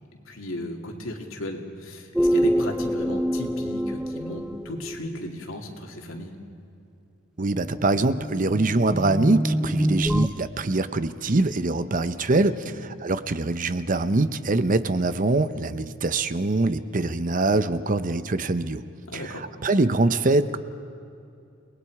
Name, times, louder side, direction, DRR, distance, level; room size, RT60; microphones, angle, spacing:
voice 1, 0.2-6.3 12.6-12.7 19.1-19.5, left 1 dB, 80° left, 2 dB, 2.6 m, -35 dB
sound 1, 2.2-5.3 7.6-10.3, equal, 5° right, 0.4 m, -26 dB
voice 2, 7.4-12.7 13.0-18.8 19.1-20.6, right 2 dB, 40° right, 12 dB, 0.7 m, -23 dB
30.0 x 20.0 x 4.8 m, 2.7 s
head